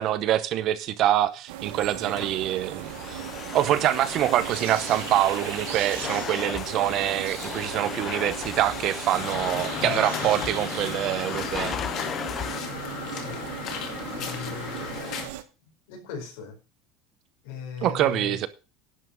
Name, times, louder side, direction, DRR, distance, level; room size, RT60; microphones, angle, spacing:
voice 1, 0.0-3.2 3.5-11.8 17.8-18.5, right 12 dB, 40° right, 0.7 m, -25 dB
sound 1, 1.5-15.4, right 13 dB, 80° right, 1.3 m, -37 dB
voice 2, 1.7-2.2 9.5-10.4 13.1-13.4 14.1-15.1 15.9-16.6 17.4-18.4, left 7 dB, 80° left, 4.4 m, -38 dB
Domestic sounds home sounds, 1.9-12.6, left 8 dB, 25° left, 0.5 m, -36 dB
sound 2, 9.1-15.3, left 7 dB, 45° left, 2.2 m, -35 dB
11.0 x 5.8 x 6.3 m
cardioid pair, 170°, 0 cm